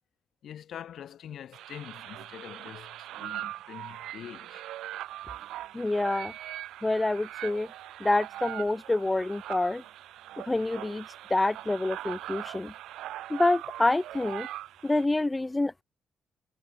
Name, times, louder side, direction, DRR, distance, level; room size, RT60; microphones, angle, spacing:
voice 1, 0.4-4.6, left 10 dB, 65° left, 1.4 m, -44 dB
sound 1, 1.5-15.0, right 14 dB, 85° right, 2.6 m, -41 dB
voice 2, 5.7-6.3 6.8-7.7 8.0-9.8 10.4-12.7 13.3-14.5 14.8-15.8, left 2 dB, 15° left, 0.8 m, -27 dB
cardioid pair, 90°, 0 cm